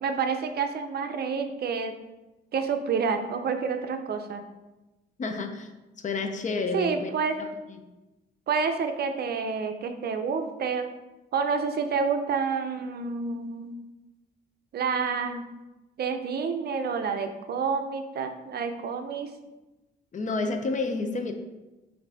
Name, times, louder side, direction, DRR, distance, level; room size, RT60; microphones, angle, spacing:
voice 1, 0.0-2.0 2.5-4.4 6.7-7.4 8.5-10.9 11.3-13.7 14.7-15.5 16.0-19.3, right 5 dB, 55° right, 7 dB, 0.5 m, -28 dB
voice 2, 5.2-5.7 6.0-7.1 7.4-7.5 7.8-7.9 20.1-21.3, left 3 dB, 40° left, 6 dB, 0.6 m, -30 dB
5.7 x 2.6 x 3.4 m, 1.1 s
cardioid pair, 90°, 20 cm